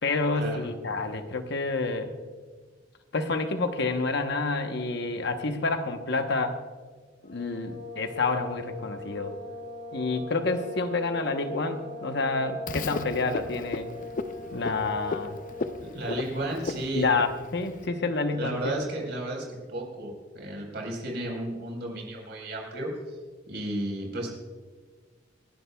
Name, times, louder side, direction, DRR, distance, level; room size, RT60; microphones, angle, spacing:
voice 1, 0.0-2.1 3.1-6.6 7.2-9.4 9.9-13.9 14.5-15.4 16.9-18.7, left 3 dB, 65° left, 6 dB, 1.0 m, -28 dB
sound 1, 7.2-15.9, left 2 dB, 85° left, 3.7 m, -41 dB
Frog, 12.7-17.9, left 3 dB, 45° left, 0.6 m, -36 dB
voice 2, 15.8-17.1 18.4-22.9 23.5-24.3, right 1 dB, 65° right, 0 dB, 4.4 m, -33 dB
28.0 x 11.0 x 2.3 m, 1.4 s
head